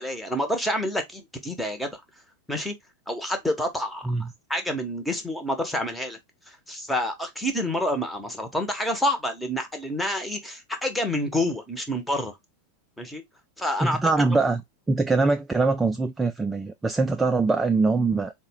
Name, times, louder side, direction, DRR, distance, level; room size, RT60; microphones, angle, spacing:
voice 1, 0.0-2.0 2.5-2.8 3.1-6.2 6.5-12.3 13.0-13.2 13.6-14.0 15.2-15.3, left 1 dB, 5° left, 0.9 m, -28 dB
voice 2, 13.8-14.6 14.9-18.3, right 3 dB, 10° right, 0.3 m, -23 dB
4.1 x 2.2 x 3.5 m
figure-of-eight pair, 90°, 0 cm